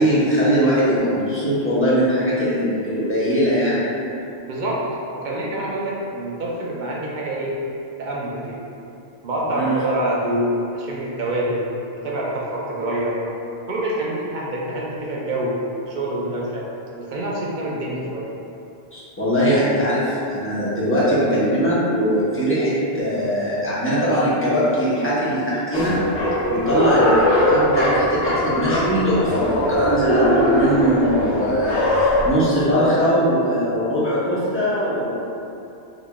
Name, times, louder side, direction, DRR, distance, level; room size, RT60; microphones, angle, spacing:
voice 1, 0.0-3.8 9.5-9.8 18.9-25.9 26.5-35.1, equal, 15° left, -10 dB, 0.8 m, -20 dB
voice 2, 4.5-4.8 5.1-7.6 8.0-8.6 9.2-11.6 12.0-13.2 13.7-15.6 15.9-16.6 17.0-18.3, right 1 dB, 50° right, -4 dB, 0.7 m, -26 dB
sound 1, 25.7-32.3, left 1 dB, 80° left, 1.0 m, -21 dB
3.8 x 3.2 x 2.3 m, 2.7 s
omnidirectional pair, 1.1 m